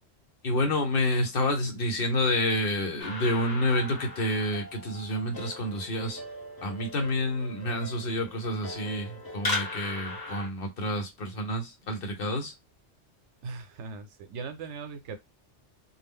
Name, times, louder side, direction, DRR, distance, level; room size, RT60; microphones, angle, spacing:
voice 1, 0.4-6.2 6.6-12.5, left 1 dB, 55° left, 0.9 m, -29 dB
sound 1, 3.0-10.5, left 2 dB, 20° left, 0.9 m, -38 dB
voice 2, 13.4-15.2, right 4 dB, 90° right, 0.9 m, -39 dB
2.3 x 2.0 x 3.5 m
omnidirectional pair, 1.2 m